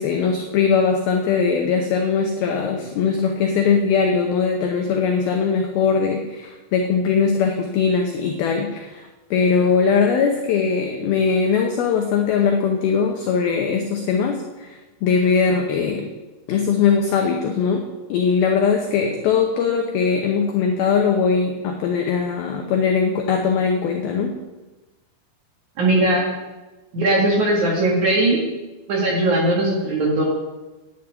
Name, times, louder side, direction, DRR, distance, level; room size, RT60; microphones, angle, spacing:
voice 1, 0.0-16.1 16.5-24.4, left 5 dB, 80° left, 3 dB, 2.2 m, -20 dB
voice 2, 25.8-26.3 26.9-28.4 28.9-30.2, right 1 dB, 55° right, -2 dB, 2.3 m, -19 dB
10.0 x 7.1 x 8.7 m, 1.1 s
omnidirectional pair, 5.5 m